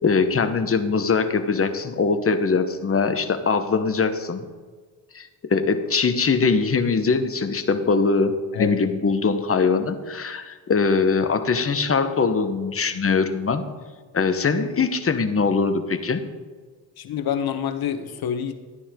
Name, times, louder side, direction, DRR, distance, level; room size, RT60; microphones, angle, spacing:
voice 1, 0.0-4.4 5.1-8.3 8.6-13.6 14.1-16.2, left 4 dB, 30° left, 8 dB, 1.2 m, -22 dB
voice 2, 17.0-18.5, left 9 dB, 55° left, 8 dB, 1.3 m, -27 dB
12.5 x 9.9 x 3.8 m, 1.5 s
supercardioid pair, 65°, 44 cm